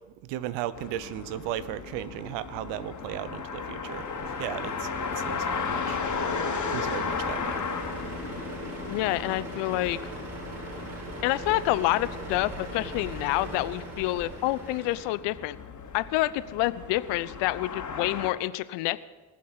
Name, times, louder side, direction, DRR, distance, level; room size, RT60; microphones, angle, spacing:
voice 1, 0.3-4.9 5.2-6.0 6.7-7.6, right 12 dB, 65° right, 16 dB, 1.0 m, -35 dB
sound 1, 0.7-18.3, left 5 dB, 40° left, 3.0 m, -35 dB
Truck, 3.8-15.0, right 1 dB, 35° right, 5.3 m, -40 dB
voice 2, 8.9-10.0 11.2-15.6 15.9-19.0, left 17 dB, 65° left, 16 dB, 0.8 m, -28 dB
20.0 x 7.5 x 8.8 m, 1.3 s
hypercardioid pair, 60°, 47 cm